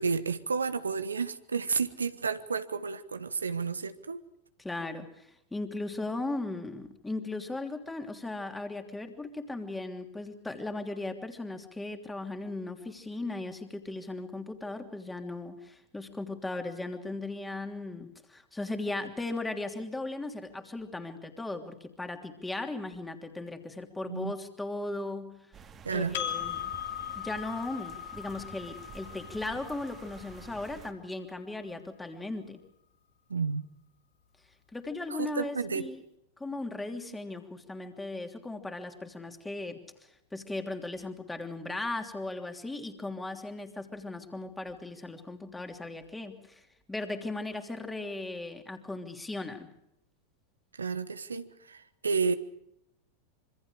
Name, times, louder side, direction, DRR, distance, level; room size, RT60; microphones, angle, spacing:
voice 1, 0.0-4.2 24.1-24.3 25.8-26.2 33.3-33.7 35.1-35.9 50.7-52.3, right 5 dB, 75° right, 11 dB, 1.3 m, -31 dB
voice 2, 4.6-25.3 25.9-26.6 27.1-32.6 34.7-36.0 36.4-49.7, left 2 dB, 10° left, 5 dB, 3.1 m, -37 dB
sound 1, 25.5-30.9, right 6 dB, 25° right, 2.2 m, -50 dB
Percussion, 26.1-31.0, left 10 dB, 55° left, 3.1 m, -39 dB
26.5 x 25.5 x 5.0 m, 0.81 s
figure-of-eight pair, 90°, 0 cm